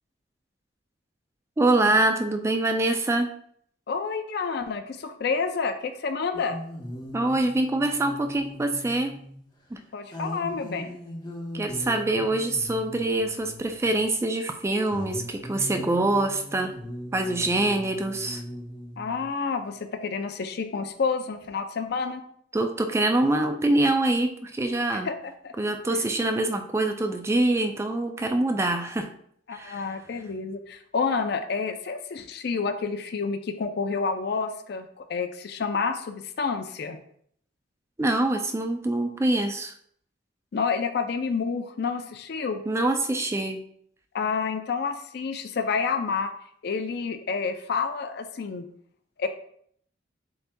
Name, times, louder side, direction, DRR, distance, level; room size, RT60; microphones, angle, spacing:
voice 1, 1.6-3.3 7.1-9.2 9.7-9.8 11.5-16.7 17.1-18.4 22.5-25.1 25.6-29.1 29.5-29.8 38.0-39.7 42.7-43.6, right 2 dB, 15° right, 6 dB, 0.3 m, -25 dB
voice 2, 3.9-6.6 9.9-11.0 19.0-22.2 24.9-25.5 29.5-37.0 40.5-42.6 44.1-46.3 46.6-48.7 49.2-49.3, left 5 dB, 60° left, 8 dB, 0.4 m, -29 dB
sound 1, 6.3-9.4 10.1-14.1 14.9-19.3 21.4-21.5, equal, 25° left, 0.8 m, -40 dB
7.6 x 2.7 x 2.2 m, 0.64 s
head